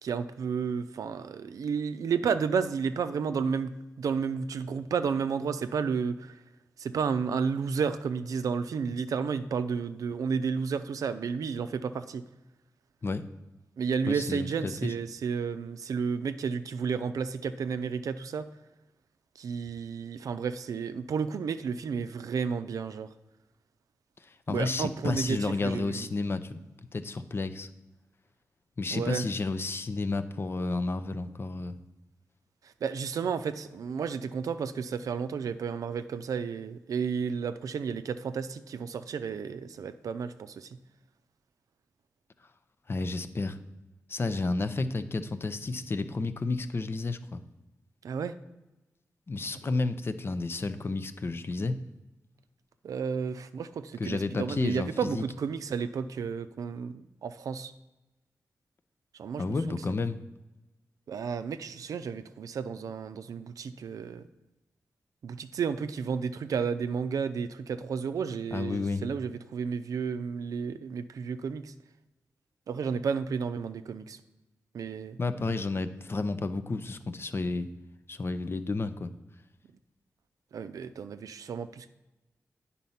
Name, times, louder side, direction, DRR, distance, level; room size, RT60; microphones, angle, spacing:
voice 1, 0.0-6.4 6.8-12.2 13.8-18.5 19.4-23.1 24.5-26.1 28.9-29.3 32.8-40.8 48.0-48.3 52.8-57.7 59.2-59.8 61.1-64.3 65.2-71.7 72.7-74.2 74.7-75.2 80.5-81.9, right 6 dB, 85° right, 11 dB, 0.4 m, -32 dB
voice 2, 14.1-14.9 24.5-26.6 26.9-27.7 28.8-31.7 42.9-43.6 44.1-47.4 49.3-51.8 54.0-55.2 59.4-60.2 68.5-69.1 75.2-77.7 78.1-79.1, left 3 dB, 45° left, 11 dB, 0.6 m, -31 dB
9.2 x 4.1 x 5.7 m, 1.0 s
cardioid pair, 75°, 6 cm